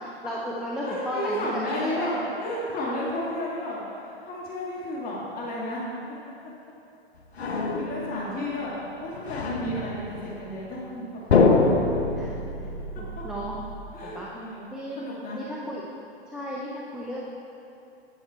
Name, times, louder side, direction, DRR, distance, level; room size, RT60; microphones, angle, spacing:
voice 1, 0.0-2.1 8.3-8.5 12.2-12.7 13.0-13.6 14.0-14.3 14.7-15.0 15.3-15.9 16.3-17.2, equal, ahead, -6 dB, 0.8 m, -35 dB
voice 2, 0.8-5.8 7.4-8.7 9.0-11.0 13.9-14.7 15.0-15.4, left 1 dB, 30° left, -5 dB, 1.8 m, -32 dB
sound 1, 7.4-8.4 9.1-10.6 11.3-13.8, left 3 dB, 85° left, 0.9 m, -25 dB
10.0 x 6.4 x 4.6 m, 2.7 s
figure-of-eight pair, 105°, 31 cm